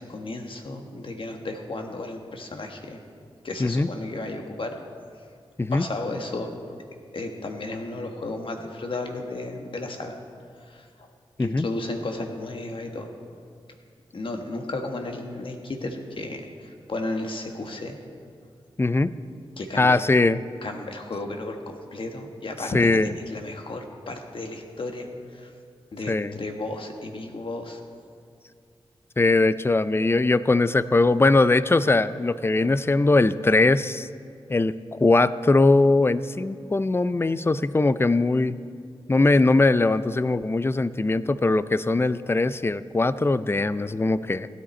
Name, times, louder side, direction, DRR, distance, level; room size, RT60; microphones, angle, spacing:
voice 1, 0.0-3.0 3.4-4.7 5.7-6.5 7.1-10.1 10.7-10.8 11.4-13.1 14.1-16.4 16.9-18.0 19.6-20.0 20.6-25.1 25.3-25.5 25.9-27.8, left 2 dB, 60° left, 3 dB, 1.4 m, -33 dB
voice 2, 18.8-19.1 19.8-20.4 22.7-23.1 26.1-26.4 29.2-34.1 34.5-34.7 35.0-38.6 39.1-44.5, left 2 dB, 25° left, 15 dB, 0.4 m, -21 dB
16.0 x 10.0 x 4.3 m, 2.3 s
cardioid pair, 50°, 10 cm